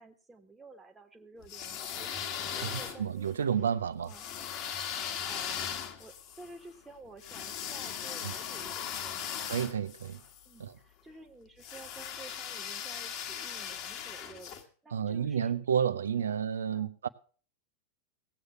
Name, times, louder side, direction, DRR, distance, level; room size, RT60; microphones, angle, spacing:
voice 1, 0.0-3.3 4.0-4.3 4.9-9.4 10.4-15.5 16.2-16.3 16.7-16.9, right 3 dB, 10° right, 1.5 m, -52 dB
sound 1, 1.4-3.3 4.1-10.5 11.6-14.6, left 8 dB, 40° left, 1.8 m, -38 dB
voice 2, 2.6-4.1 8.2-8.3 9.4-10.2 10.6-10.8 14.9-17.1, right 8 dB, 70° right, 0.7 m, -31 dB
17.5 x 8.0 x 5.7 m
figure-of-eight pair, 90°, 0 cm